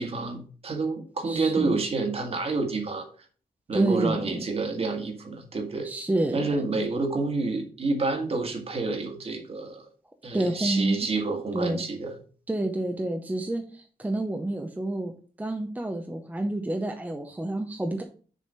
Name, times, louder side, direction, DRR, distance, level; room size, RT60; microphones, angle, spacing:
voice 1, 0.0-3.0 3.7-5.9 6.3-9.9 10.2-12.2, right 3 dB, 40° right, 4 dB, 1.7 m, -28 dB
voice 2, 1.2-1.8 3.7-4.4 5.8-6.5 10.3-11.1 11.5-11.8 12.5-18.0, right 1 dB, 10° right, 3 dB, 0.7 m, -29 dB
6.7 x 4.9 x 5.5 m, 0.40 s
wide cardioid pair, 175°, 16 cm